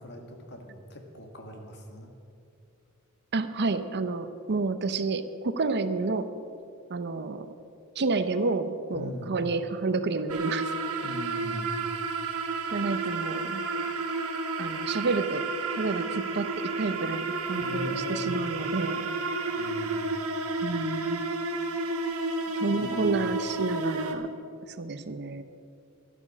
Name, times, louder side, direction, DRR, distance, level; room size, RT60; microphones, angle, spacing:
voice 1, 0.0-2.1 8.9-9.3 11.0-11.7 17.5-18.4 19.6-20.2 22.7-23.1, equal, 55° left, 3 dB, 1.9 m, -40 dB
voice 2, 3.3-6.3 6.9-7.5 8.0-10.7 12.7-13.6 14.6-19.1 20.6-21.3 22.5-24.3 24.7-25.4, right 3 dB, 50° right, 10 dB, 0.7 m, -30 dB
sound 1, 10.3-24.1, right 3 dB, 75° right, 1.4 m, -31 dB
12.5 x 12.0 x 6.1 m, 2.5 s
head